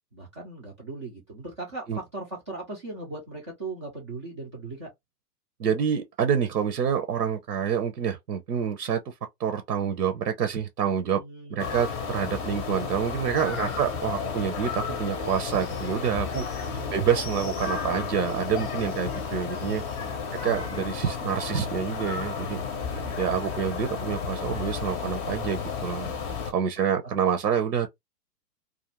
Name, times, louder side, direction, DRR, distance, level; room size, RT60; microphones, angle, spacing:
voice 1, 0.1-4.9 11.1-11.9 13.6-14.0 16.6-17.0 20.0-20.4 22.9-23.1, right 3 dB, 20° right, 0.3 m, -39 dB
voice 2, 5.6-9.1 9.4-11.2 11.5-16.4 16.9-19.8 20.4-22.6 23.1-26.1 26.5-27.9, right 8 dB, 85° right, 0.7 m, -27 dB
sound 1, 11.6-26.5, left 6 dB, 25° left, 0.6 m, -32 dB
2.4 x 2.4 x 2.9 m
hypercardioid pair, 125°, 48 cm